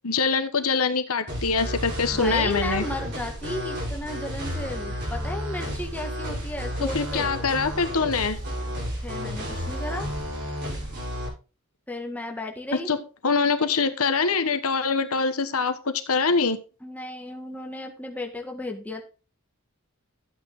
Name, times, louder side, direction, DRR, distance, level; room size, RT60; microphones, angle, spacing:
voice 1, 0.0-2.8 6.9-8.4 12.9-13.0 13.2-16.6, left 4 dB, 85° left, 9 dB, 1.3 m, -24 dB
sound 1, 1.3-11.3, equal, 55° right, 7.1 m, -32 dB
voice 2, 2.1-7.3 9.0-10.1 11.9-12.9 16.8-19.0, left 1 dB, 5° left, 2 dB, 2.0 m, -34 dB
12.0 x 8.7 x 3.8 m, 0.33 s
head